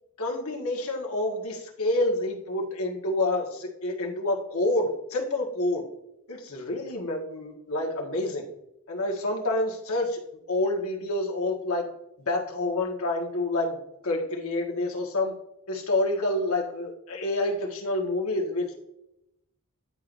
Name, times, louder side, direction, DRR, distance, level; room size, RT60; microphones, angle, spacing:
voice 1, 0.2-5.8 6.3-8.5 8.9-10.2 10.5-11.9 12.3-13.8 14.0-15.3 15.7-18.8, left 2 dB, 75° left, 0 dB, 1.6 m, -28 dB
10.5 x 4.6 x 2.6 m, 0.82 s
head